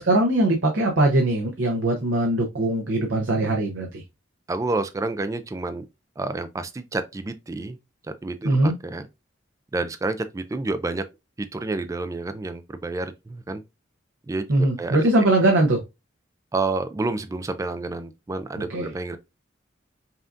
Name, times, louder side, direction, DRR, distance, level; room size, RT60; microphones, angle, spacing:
voice 1, 0.0-4.0 8.4-8.7 14.5-15.8 18.6-18.9, right 1 dB, 80° right, 0.8 m, -21 dB
voice 2, 4.5-5.9 6.2-7.8 8.0-9.1 9.7-11.1 11.4-13.6 14.3-15.0 16.5-19.2, right 3 dB, 15° right, 0.3 m, -29 dB
5.5 x 2.5 x 2.4 m
head